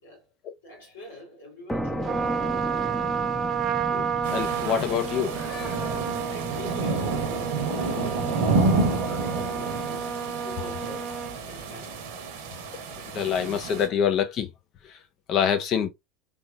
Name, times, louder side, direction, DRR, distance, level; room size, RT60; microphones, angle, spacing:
voice 1, 0.0-0.3 0.6-2.2 6.0-9.9 10.3-11.2 11.5-12.0, left 2 dB, 85° left, 2.2 m, -45 dB
sound 1, 1.7-9.1, equal, 5° left, 0.7 m, -36 dB
Trumpet, 2.0-11.4, right 7 dB, 35° right, 0.8 m, -31 dB
voice 2, 3.9-5.8 9.1-9.2 10.9-11.0 12.9-14.5 14.8-15.0 15.3-15.9, left 8 dB, 50° left, 0.8 m, -27 dB
sound 2, 4.2-13.9, right 3 dB, 65° right, 1.0 m, -29 dB
3.5 x 3.0 x 2.4 m
hypercardioid pair, 75°, 0 cm